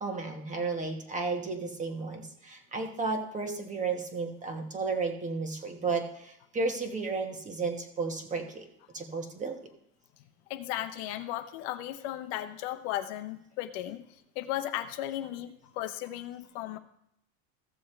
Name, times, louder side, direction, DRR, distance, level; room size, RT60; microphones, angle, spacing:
voice 1, 0.0-8.6 8.9-9.6, right 4 dB, 20° right, 4 dB, 1.3 m, -33 dB
voice 2, 10.5-14.0 14.4-16.8, left 13 dB, 60° left, 9 dB, 0.8 m, -35 dB
15.0 x 6.8 x 3.3 m, 0.74 s
supercardioid pair, 140°, 39 cm